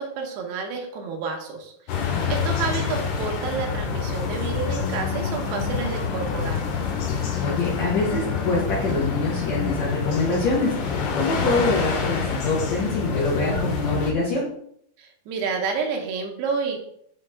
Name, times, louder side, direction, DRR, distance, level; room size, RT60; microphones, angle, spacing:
voice 1, 0.0-6.7 15.0-16.8, right 5 dB, 85° right, 2 dB, 3.1 m, -30 dB
sound 1, 1.9-14.1, left 5 dB, 90° left, 3.1 m, -27 dB
voice 2, 7.4-14.5, left 3 dB, 70° left, -4 dB, 1.8 m, -25 dB
7.1 x 3.9 x 3.4 m, 0.68 s
omnidirectional pair, 4.7 m